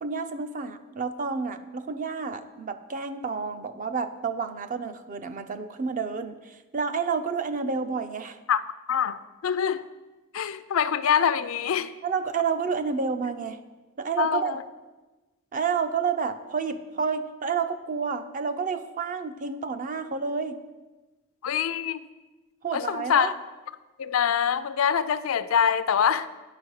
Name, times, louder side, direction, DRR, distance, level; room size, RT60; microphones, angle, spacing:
voice 1, 0.0-8.4 12.0-13.6 14.0-14.5 15.5-20.6 22.6-23.3, right 5 dB, 40° right, 9 dB, 0.5 m, -30 dB
voice 2, 8.9-9.8 10.3-11.9 14.2-14.6 21.4-22.0 22.7-23.3 24.0-26.3, left 7 dB, 70° left, 14 dB, 0.4 m, -24 dB
9.4 x 5.3 x 6.4 m, 1.2 s
head